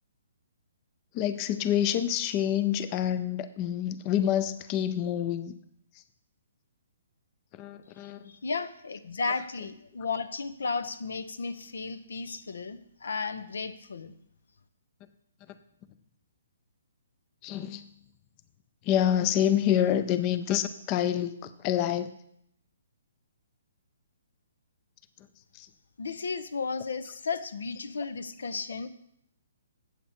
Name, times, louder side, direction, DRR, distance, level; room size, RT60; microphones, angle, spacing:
voice 1, 1.1-5.5 7.6-8.2 17.4-17.8 18.9-22.1 25.6-25.7, left 10 dB, 25° left, 11 dB, 0.3 m, -27 dB
voice 2, 8.3-14.1 26.0-28.9, left 4 dB, 85° left, 12 dB, 0.7 m, -34 dB
8.2 x 7.3 x 4.3 m, 0.73 s
hypercardioid pair, 165°, 0 cm